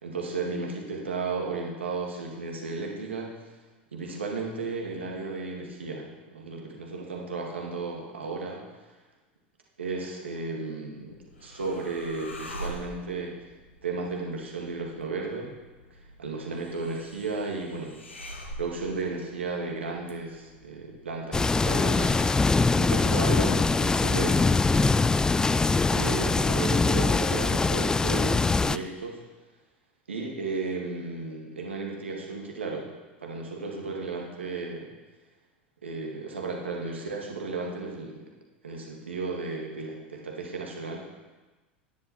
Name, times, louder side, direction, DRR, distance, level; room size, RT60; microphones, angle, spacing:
voice 1, 0.0-3.5 3.9-8.6 9.8-11.1 11.4-13.4 13.8-15.5 15.9-18.0 18.6-22.2 22.7-24.4 25.9-29.2 30.1-32.9 33.2-34.9 35.8-38.3 38.6-41.0, right 3 dB, 80° right, 0 dB, 2.0 m, -34 dB
sound 1, 10.7-22.8, equal, 85° left, 1.4 m, -45 dB
sound 2, 21.3-28.8, left 3 dB, 10° left, 0.3 m, -23 dB
11.0 x 9.4 x 4.4 m, 1.2 s
figure-of-eight pair, 80°, 6 cm